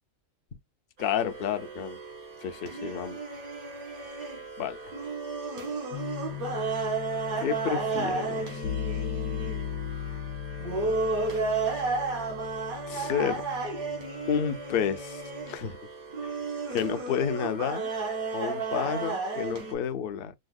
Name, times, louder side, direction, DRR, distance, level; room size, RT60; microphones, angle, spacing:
voice 1, 1.0-2.0 2.4-3.2 4.6-4.8 7.4-8.6 12.9-13.4 14.3-15.8 16.2-16.3 16.7-17.9 18.3-20.3, left 8 dB, 55° left, 0.6 m, -30 dB
sound 1, 1.0-19.7, right 4 dB, 90° right, 1.8 m, -33 dB
sound 2, 5.9-15.6, left 9 dB, 80° left, 1.0 m, -38 dB
5.2 x 2.0 x 2.3 m
omnidirectional pair, 1.5 m